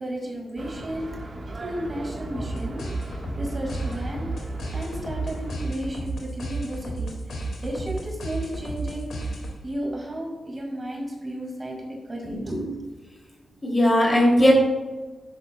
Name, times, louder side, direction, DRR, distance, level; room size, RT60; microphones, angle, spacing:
voice 1, 0.0-4.3 4.7-9.3 9.6-12.8, right 1 dB, 30° right, -1 dB, 2.0 m, -33 dB
sound 1, 0.6-5.6, right 2 dB, 45° right, 1.3 m, -36 dB
sound 2, 2.3-9.8, right 2 dB, 85° left, 2.0 m, -33 dB
voice 2, 12.2-12.6 13.6-14.5, left 1 dB, 20° left, -1 dB, 2.7 m, -19 dB
11.0 x 9.8 x 2.2 m, 1.3 s
wide cardioid pair, 120°, 0 cm